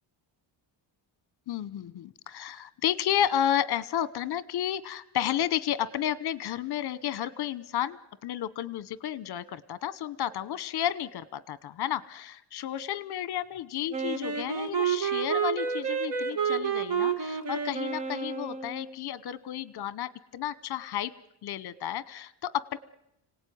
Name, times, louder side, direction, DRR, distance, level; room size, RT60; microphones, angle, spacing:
voice 1, 1.5-21.1 21.4-22.8, left 10 dB, 50° left, 17 dB, 1.1 m, -32 dB
Wind instrument woodwind instrument, 13.9-19.0, right 6 dB, 55° right, 2.1 m, -30 dB
25.5 x 18.0 x 9.4 m, 0.84 s
cardioid pair, 175°, 48 cm